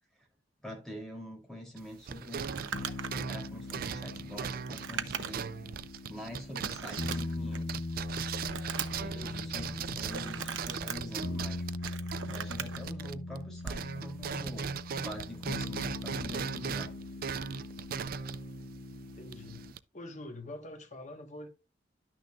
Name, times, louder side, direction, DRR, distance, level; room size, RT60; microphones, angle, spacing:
voice 1, 0.6-3.0 3.3-5.5 6.1-7.7 9.0-11.6 12.3-14.7 15.0-16.9, equal, 5° left, 3.3 m, -44 dB
sound 1, 1.8-13.4 13.7-19.8, right 7 dB, 50° right, 0.4 m, -39 dB
Crumpling crinkling, 2.4-5.6 6.0-6.1 6.6-7.7 8.1-9.1 10.1-11.0 11.6-12.8 13.6-13.9, right 7 dB, 90° right, 0.7 m, -39 dB
sound 2, 2.7-19.7, left 2 dB, 85° left, 0.8 m, -41 dB
voice 2, 9.1-9.5 9.8-10.4 19.1-19.7 19.9-21.5, left 2 dB, 40° left, 1.4 m, -45 dB
11.5 x 6.3 x 2.4 m
head